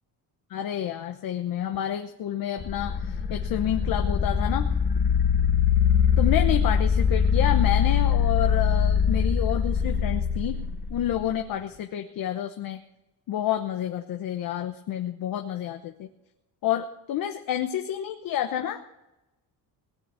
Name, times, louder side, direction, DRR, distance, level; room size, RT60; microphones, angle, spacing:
voice 1, 0.5-4.7 6.2-10.6 10.9-12.8 13.3-16.1 16.6-18.8, left 11 dB, 60° left, 6 dB, 1.0 m, -29 dB
sound 1, 2.6-11.4, left 7 dB, 25° left, 1.3 m, -23 dB
18.5 x 7.0 x 9.9 m, 0.94 s
cardioid pair, 155°, 39 cm